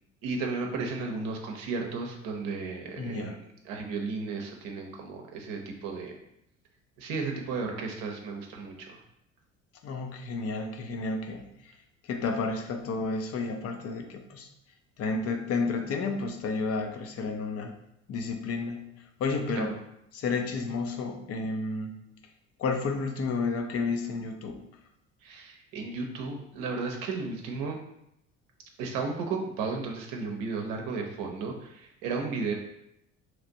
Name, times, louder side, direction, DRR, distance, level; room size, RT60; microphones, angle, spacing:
voice 1, 0.2-3.4 3.6-6.2 7.0-9.0 19.5-19.7 25.2-27.8 28.8-32.5, right 4 dB, 55° right, 2 dB, 0.8 m, -34 dB
voice 2, 3.0-3.4 9.8-11.5 12.0-14.5 15.0-17.7 18.1-18.9 19.2-19.7 20.1-22.0 22.6-24.6, left 4 dB, 40° left, 5 dB, 0.6 m, -31 dB
3.2 x 2.5 x 4.0 m, 0.80 s
figure-of-eight pair, 55°, 39 cm